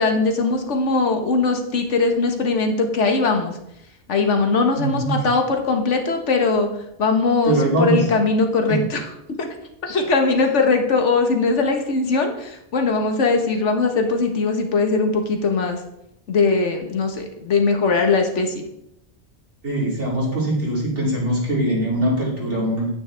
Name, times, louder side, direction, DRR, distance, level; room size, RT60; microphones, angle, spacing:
voice 1, 0.0-3.6 4.1-6.7 7.0-9.0 9.4-9.5 9.8-15.8 16.3-18.6, left 4 dB, 85° left, 4 dB, 1.5 m, -20 dB
voice 2, 4.8-5.2 7.5-8.0 8.7-8.8 19.6-22.9, right 1 dB, 80° right, -4 dB, 3.2 m, -22 dB
9.6 x 8.7 x 3.4 m, 0.80 s
omnidirectional pair, 1.2 m